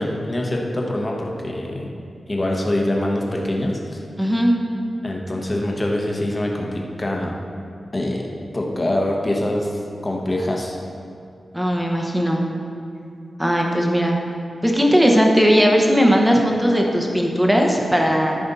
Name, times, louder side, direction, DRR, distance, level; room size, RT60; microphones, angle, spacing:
voice 1, 0.0-1.9 2.3-4.0 5.0-7.3 7.9-8.3 8.5-10.8, left 1 dB, 20° left, -1 dB, 1.0 m, -24 dB
voice 2, 4.2-4.5 11.5-12.4 13.4-14.2 14.6-18.4, equal, 5° right, 0 dB, 0.9 m, -18 dB
14.0 x 5.1 x 4.1 m, 2.4 s
wide cardioid pair, 175°, 0 cm